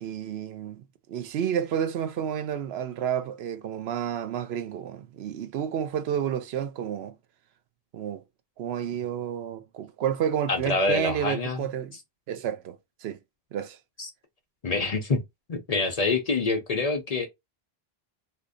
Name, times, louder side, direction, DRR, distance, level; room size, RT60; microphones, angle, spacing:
voice 1, 0.0-7.2 7.9-8.2 8.6-11.9 12.3-13.2 13.5-13.8, right 9 dB, 80° right, 0.8 m, -30 dB
voice 2, 10.5-11.7 14.0-14.1 14.6-15.2 15.5-17.3, left 3 dB, 45° left, 0.6 m, -26 dB
2.8 x 2.5 x 3.7 m
omnidirectional pair, 1.0 m